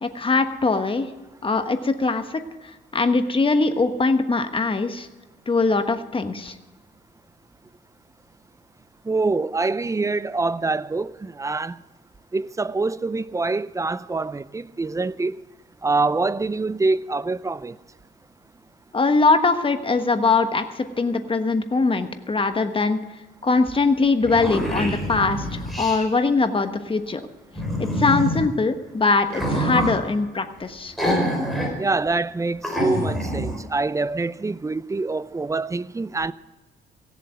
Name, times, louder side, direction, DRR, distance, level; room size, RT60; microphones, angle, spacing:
voice 1, 0.0-1.1 1.4-5.1 5.5-6.6 18.9-23.0 23.4-27.2 27.8-30.9, left 3 dB, 25° left, 1.2 m, -22 dB
voice 2, 9.1-11.8 12.3-15.4 15.8-17.8 31.8-36.3, right 3 dB, 15° right, 0.4 m, -25 dB
sound 1, 23.7-23.8 24.0-26.0 27.5-28.5 29.3-30.0 31.0-31.7 32.1-32.2 32.6-33.6, equal, ahead, 4.3 m, -25 dB
16.5 x 7.6 x 7.9 m
cardioid pair, 90°, 20 cm